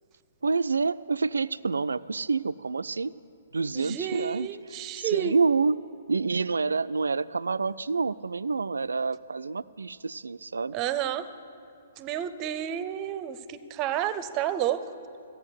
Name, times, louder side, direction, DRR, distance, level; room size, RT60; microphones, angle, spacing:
voice 1, 0.4-3.1 3.5-4.5 5.0-5.8 6.1-10.8, right 4 dB, 75° right, 16 dB, 0.3 m, -27 dB
voice 2, 3.7-5.4 10.7-11.3 12.0-14.8, right 10 dB, 30° right, 14 dB, 0.7 m, -30 dB
14.0 x 8.9 x 8.0 m, 2.5 s
figure-of-eight pair, 120°, 0 cm